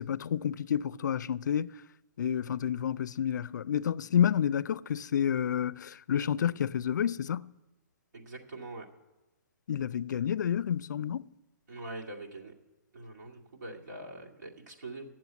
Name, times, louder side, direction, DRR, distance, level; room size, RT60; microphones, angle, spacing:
voice 1, 0.0-1.7 2.2-7.5 9.7-11.3, left 9 dB, 80° left, 0.4 m, -29 dB
voice 2, 8.1-8.9 11.7-12.5 12.9-15.1, right 2 dB, 85° right, 2.3 m, -43 dB
9.8 x 7.6 x 9.3 m
hypercardioid pair, 165°, 10 cm